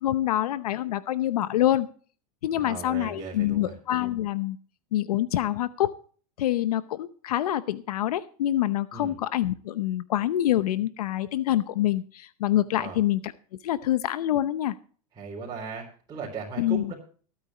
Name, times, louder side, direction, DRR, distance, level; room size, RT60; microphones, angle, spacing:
voice 1, 0.0-1.9 2.4-4.6 4.9-5.9 6.4-13.3 13.6-14.7 16.6-16.9, left 13 dB, 80° left, 14 dB, 0.8 m, -26 dB
voice 2, 2.5-3.7 8.9-9.2 12.7-13.0 15.2-16.9, right 5 dB, 20° right, -3 dB, 4.0 m, -37 dB
21.0 x 9.0 x 3.0 m, 0.42 s
hypercardioid pair, 125°, 19 cm